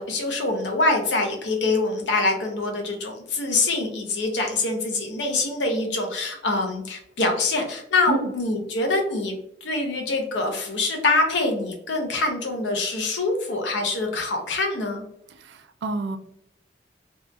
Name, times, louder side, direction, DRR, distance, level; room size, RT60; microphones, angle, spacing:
voice 1, 0.0-15.0, left 2 dB, 85° left, 3 dB, 0.6 m, -25 dB
voice 2, 15.4-16.2, right 3 dB, 75° right, 9 dB, 0.3 m, -29 dB
2.7 x 2.4 x 2.2 m, 0.74 s
head